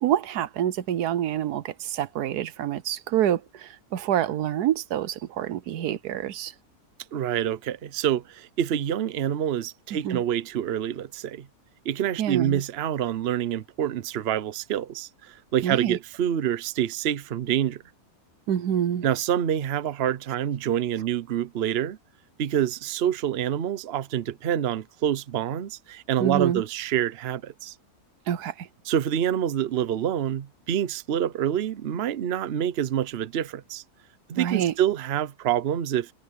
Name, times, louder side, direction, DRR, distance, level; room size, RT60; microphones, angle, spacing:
voice 1, 0.0-6.5 10.0-10.2 12.2-12.6 15.6-16.0 18.5-19.0 26.2-26.6 28.3-28.7 34.3-34.7, right 10 dB, 80° right, 1.3 m, -27 dB
voice 2, 7.1-11.5 11.8-17.8 19.0-22.0 22.4-27.7 28.9-33.8 34.3-36.1, right 10 dB, 50° right, 0.9 m, -27 dB
omnidirectional pair, 1.6 m